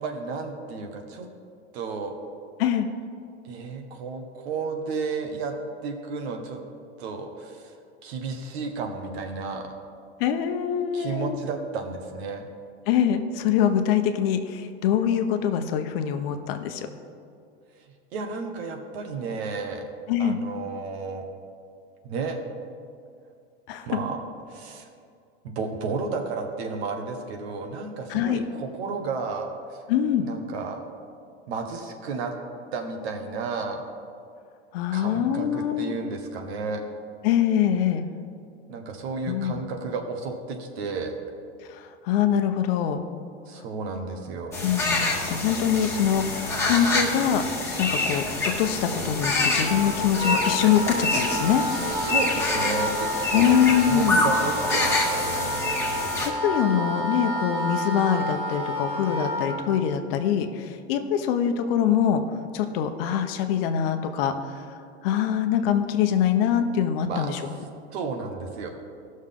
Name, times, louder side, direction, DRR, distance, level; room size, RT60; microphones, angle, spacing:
voice 1, 0.0-1.3 1.7-2.1 3.4-5.5 5.8-6.6 7.0-7.7 8.0-9.7 10.9-12.5 18.1-19.8 20.2-21.2 22.0-22.4 23.9-24.2 24.5-24.9 25.4-29.9 30.2-30.8 31.5-32.3 32.7-33.8 34.9-36.8 38.7-41.2 43.5-44.6 51.7-53.6 53.9-55.6 67.1-67.3 67.9-68.7, right 4 dB, 70° right, 4 dB, 1.4 m, -32 dB
voice 2, 10.2-11.4 12.9-16.9 20.1-20.4 23.7-23.9 28.1-28.4 29.9-30.3 34.7-36.0 37.2-38.0 39.3-39.6 41.7-43.0 44.6-47.4 47.8-48.2 48.6-51.6 53.3-54.3 56.2-62.2 62.5-64.6 65.0-67.4, left 9 dB, 60° left, 7 dB, 0.9 m, -24 dB
sound 1, 44.5-56.3, left 2 dB, 10° left, 1.6 m, -27 dB
Wind instrument woodwind instrument, 49.6-59.6, equal, 15° right, 1.6 m, -29 dB
15.0 x 6.4 x 3.7 m, 2.4 s
supercardioid pair, 135°, 33 cm